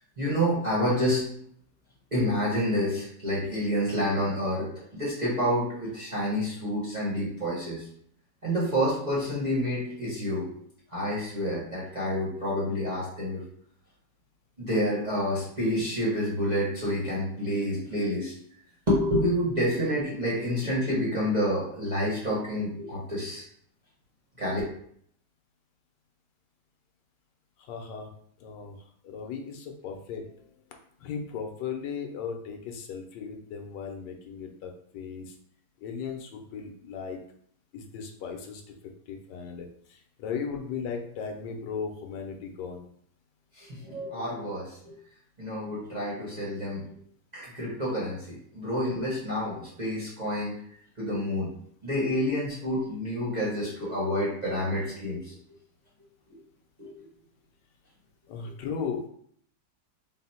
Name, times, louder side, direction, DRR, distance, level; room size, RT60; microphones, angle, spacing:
voice 1, 0.2-1.3 2.1-7.8 8.4-10.5 10.9-13.4 14.6-18.3 18.9-23.4 24.4-24.6 43.6-44.7 45.4-46.8 47.3-50.5 51.0-51.5 51.8-55.3 56.8-56.9, equal, 30° right, -7 dB, 1.0 m, -28 dB
voice 2, 27.6-28.1 28.4-28.8 29.0-30.4 31.0-35.3 35.8-37.2 37.7-38.6 39.1-42.9 58.3-59.0, left 6 dB, 85° left, 4 dB, 1.3 m, -36 dB
3.9 x 2.0 x 4.2 m, 0.64 s
omnidirectional pair, 1.8 m